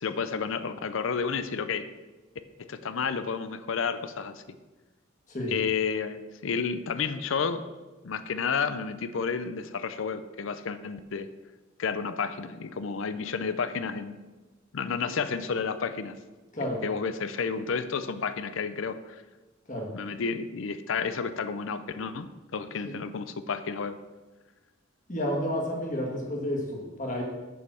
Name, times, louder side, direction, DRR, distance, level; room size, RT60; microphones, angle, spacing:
voice 1, 0.0-1.9 2.6-4.6 5.5-7.7 8.0-11.3 11.8-14.2 14.7-16.2 16.8-19.2 19.9-24.0, left 5 dB, 65° left, 12 dB, 0.5 m, -31 dB
voice 2, 25.1-27.2, equal, 35° left, -1 dB, 1.7 m, -31 dB
7.0 x 5.4 x 6.3 m, 1.2 s
head